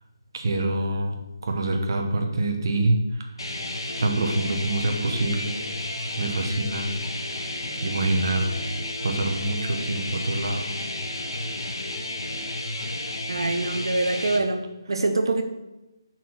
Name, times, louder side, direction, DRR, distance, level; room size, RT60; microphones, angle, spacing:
voice 1, 0.3-3.3 4.0-5.6 6.2-6.9 7.8-8.5 9.0-10.7, right 2 dB, 55° right, 3 dB, 1.1 m, -26 dB
sound 1, 3.4-14.4, left 1 dB, 80° left, 1.1 m, -32 dB
voice 2, 13.3-15.4, right 2 dB, 75° right, 6 dB, 0.9 m, -25 dB
5.9 x 4.4 x 5.9 m, 0.99 s
figure-of-eight pair, 160°, 2 cm